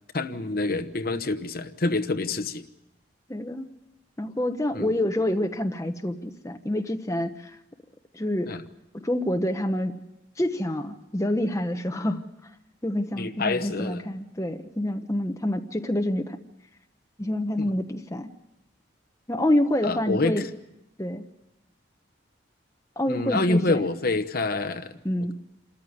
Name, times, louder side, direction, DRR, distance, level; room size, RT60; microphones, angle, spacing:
voice 1, 0.1-2.6 4.7-4.9 8.5-8.6 13.1-14.1 17.6-17.7 19.8-20.4 23.1-24.9, left 2 dB, 50° left, 10 dB, 1.0 m, -27 dB
voice 2, 3.3-3.7 4.2-7.6 8.1-8.6 8.9-10.0 10.4-12.2 12.8-16.4 17.2-18.3 19.3-20.4 21.0-21.2 23.0-23.9 25.0-25.3, left 1 dB, 15° left, 5 dB, 0.9 m, -27 dB
28.0 x 14.0 x 9.4 m, 0.93 s
head